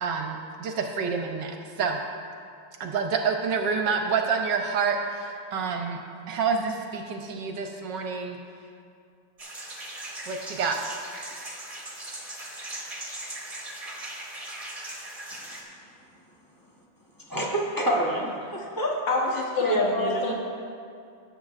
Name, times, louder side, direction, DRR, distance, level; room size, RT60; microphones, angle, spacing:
voice 1, 0.0-2.0 2.8-6.0 6.3-8.4 10.2-10.8, right 5 dB, 70° right, 3 dB, 1.2 m, -28 dB
sound 1, 9.4-15.6, right 1 dB, 20° right, 1.1 m, -39 dB
voice 2, 17.3-18.9 19.6-20.3, right 1 dB, 15° left, -3 dB, 0.7 m, -27 dB
voice 3, 19.1-20.3, left 3 dB, 65° left, -2 dB, 1.9 m, -26 dB
17.0 x 7.5 x 2.4 m, 2.4 s
omnidirectional pair, 2.2 m